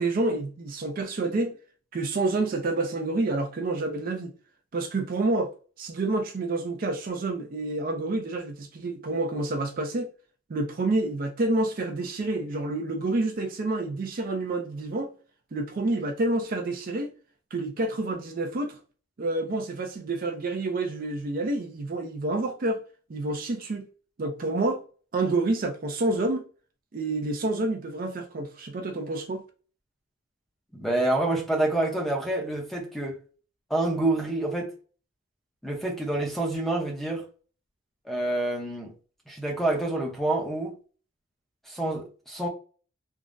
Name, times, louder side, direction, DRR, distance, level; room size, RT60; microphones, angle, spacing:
voice 1, 0.0-1.6 1.9-4.3 4.7-5.5 5.8-10.1 10.5-15.1 15.5-17.1 17.5-18.8 19.2-22.8 23.1-23.9 24.2-24.8 25.1-26.4 26.9-29.4, right 2 dB, 45° right, 0.4 m, -28 dB
voice 2, 30.7-33.2 33.7-34.7 35.6-37.2 38.1-38.9 39.3-40.7 41.7-42.5, right 2 dB, ahead, 0.6 m, -27 dB
3.4 x 2.0 x 2.5 m
head